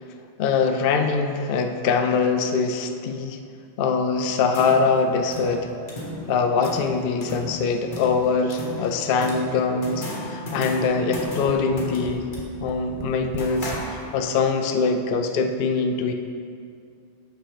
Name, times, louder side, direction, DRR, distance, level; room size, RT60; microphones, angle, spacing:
voice 1, 0.4-3.4 3.8-5.7 6.3-12.3 12.6-16.1, left 4 dB, 60° left, 5 dB, 0.6 m, -23 dB
sound 1, 4.3-14.4, left 1 dB, 40° left, 1.4 m, -36 dB
Tap, 10.9-13.9 14.7-14.8 15.1-15.2, right 3 dB, 45° right, 0.4 m, -39 dB
6.3 x 6.3 x 4.9 m, 2.3 s
omnidirectional pair, 1.3 m